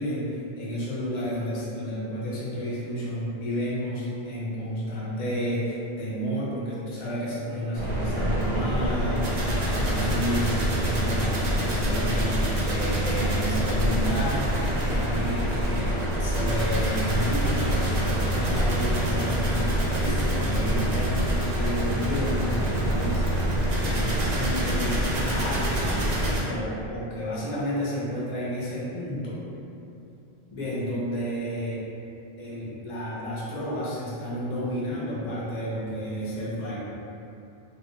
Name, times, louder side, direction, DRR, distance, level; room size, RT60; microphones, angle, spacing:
voice 1, 0.0-14.6 14.9-21.2 21.5-23.2 23.8-29.4 30.5-31.8 32.4-36.8, equal, 50° left, -7 dB, 0.6 m, -31 dB
sound 1, 7.7-26.4, right 1 dB, 55° right, 0.5 m, -26 dB
2.4 x 2.1 x 2.9 m, 2.8 s
omnidirectional pair, 1.1 m